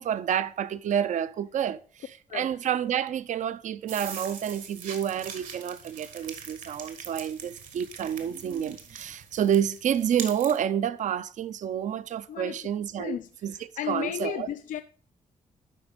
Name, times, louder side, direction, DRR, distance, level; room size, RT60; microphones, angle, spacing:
voice 1, 0.0-13.2 13.4-14.5, right 9 dB, 60° right, 0.5 m, -29 dB
sound 1, 3.9-10.6, right 6 dB, 75° right, 1.7 m, -42 dB
voice 2, 13.0-14.8, left 10 dB, 70° left, 0.4 m, -34 dB
11.0 x 4.1 x 5.1 m
cardioid pair, 120°, 14 cm